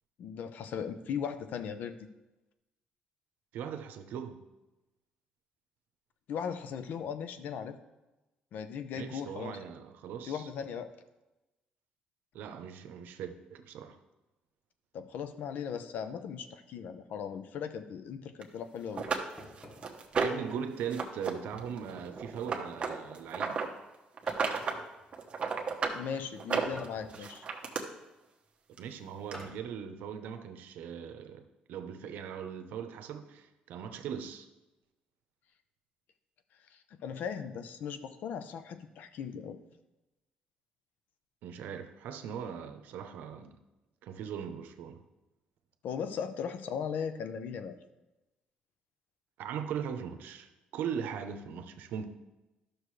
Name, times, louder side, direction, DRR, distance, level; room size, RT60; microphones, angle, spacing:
voice 1, 0.2-2.0 6.3-7.8 8.5-9.6 10.3-10.9 14.9-19.1 25.9-27.4 36.7-39.6 45.8-47.8, left 7 dB, 70° left, 0.7 m, -38 dB
voice 2, 3.5-4.4 8.9-10.5 12.3-14.0 20.2-23.6 28.8-34.5 41.4-43.6 44.0-45.0 49.4-52.1, right 7 dB, 85° right, 0.8 m, -39 dB
sound 1, 18.4-18.5 19.0-20.5 20.9-21.3 21.6-23.7 24.2-24.8 25.1-26.0 26.4-27.8 28.8-28.9 29.3-29.4, right 5 dB, 35° right, 1.0 m, -33 dB
sound 2, 19.4-20.1 21.5-22.2 24.3-24.9 26.6-27.3 29.3-29.7, left 1 dB, 15° left, 1.1 m, -50 dB
12.0 x 6.3 x 3.2 m
cardioid pair, 130°, 3 cm